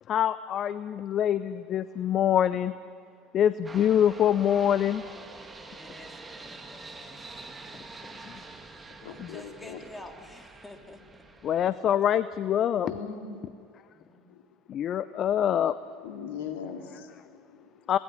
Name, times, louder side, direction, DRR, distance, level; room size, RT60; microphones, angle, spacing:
voice 1, 0.0-2.7 3.3-5.1 7.7-7.8 8.2-8.4 9.2-9.4 11.4-12.9 14.7-15.8 17.9-18.0, left 10 dB, 45° left, 15 dB, 0.6 m, -25 dB
sound 1, 3.6-11.7, right 3 dB, 20° right, 2.7 m, -46 dB
voice 2, 5.8-7.3 8.3-11.2 13.9-14.4, left 1 dB, 15° left, 3 dB, 3.3 m, -49 dB
voice 3, 9.0-9.8 12.8-13.8 14.3-14.4 16.0-17.8, left 6 dB, 70° left, 4 dB, 2.6 m, -40 dB
26.0 x 19.0 x 10.0 m, 2.4 s
figure-of-eight pair, 70°, 0 cm